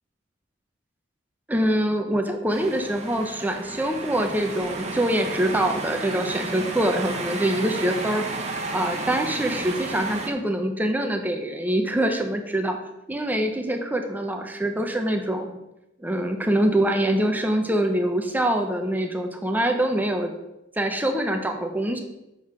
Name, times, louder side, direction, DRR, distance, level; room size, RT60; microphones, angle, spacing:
voice 1, 1.5-8.2 8.7-12.8 13.1-15.5 16.0-20.3 20.8-22.0, right 1 dB, 10° right, 4 dB, 0.8 m, -24 dB
sound 1, 2.5-10.3, right 3 dB, 35° right, 1.3 m, -32 dB
7.9 x 6.5 x 6.1 m, 0.93 s
head